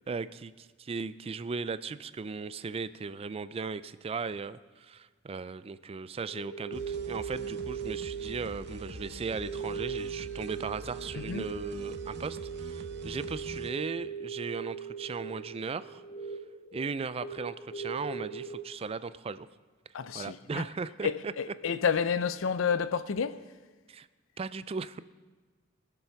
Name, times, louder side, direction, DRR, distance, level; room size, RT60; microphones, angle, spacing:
voice 1, 0.1-16.0 16.3-16.4 16.7-19.5 20.1-21.3 23.9-24.1 24.4-25.0, right 4 dB, 30° right, 0.4 m, -37 dB
sound 1, 6.2-18.6, right 6 dB, 35° left, 1.2 m, -39 dB
sound 2, 6.7-13.7, right 2 dB, 60° right, 0.7 m, -45 dB
voice 2, 19.9-20.7 21.0-23.4, left 6 dB, 85° left, 0.5 m, -30 dB
19.0 x 7.1 x 5.8 m
head